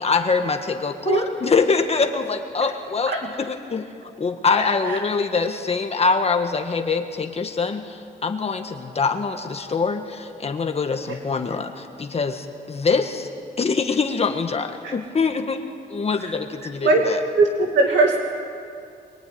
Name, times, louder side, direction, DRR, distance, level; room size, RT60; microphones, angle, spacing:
voice 1, 0.0-3.1 3.4-3.9 4.2-13.3 13.6-15.6 15.9-17.2, left 4 dB, 35° left, 4 dB, 1.5 m, -24 dB
voice 2, 17.3-18.2, right 3 dB, 85° right, 0 dB, 2.6 m, -19 dB
23.5 x 23.5 x 9.5 m, 2.4 s
cardioid pair, 130°, 18 cm